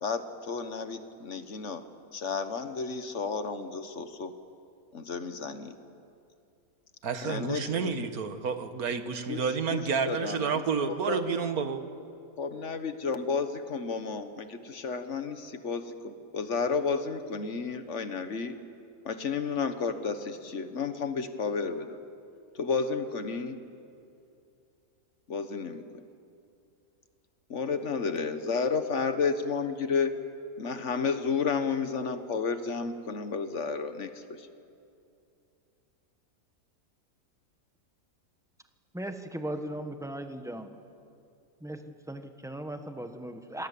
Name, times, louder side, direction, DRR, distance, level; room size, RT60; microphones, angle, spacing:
voice 1, 0.0-1.8 2.1-4.3 4.9-5.7 7.2-7.9 9.3-10.5 10.8-11.2 12.4-18.5 19.0-22.0 22.5-23.6 25.3-25.8 27.5-30.1 30.6-34.5, left 5 dB, 55° left, 1.6 m, -32 dB
voice 2, 7.0-11.8, right 6 dB, 90° right, 1.8 m, -30 dB
voice 3, 38.9-40.7 41.6-41.8 42.1-43.7, right 1 dB, ahead, 1.2 m, -37 dB
27.5 x 20.0 x 8.4 m
omnidirectional pair, 1.5 m